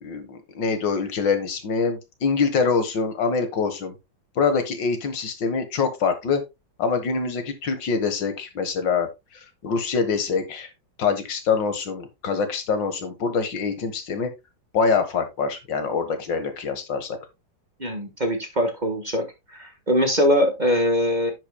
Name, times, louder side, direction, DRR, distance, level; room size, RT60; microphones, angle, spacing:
voice 1, 0.0-4.0 4.4-6.4 6.8-9.1 9.6-10.7 11.0-14.3 14.7-17.2, left 5 dB, 80° left, 8 dB, 2.1 m, -24 dB
voice 2, 17.8-19.2 19.5-21.3, equal, 25° right, 5 dB, 1.4 m, -22 dB
10.0 x 8.0 x 2.2 m, 0.22 s
omnidirectional pair, 2.0 m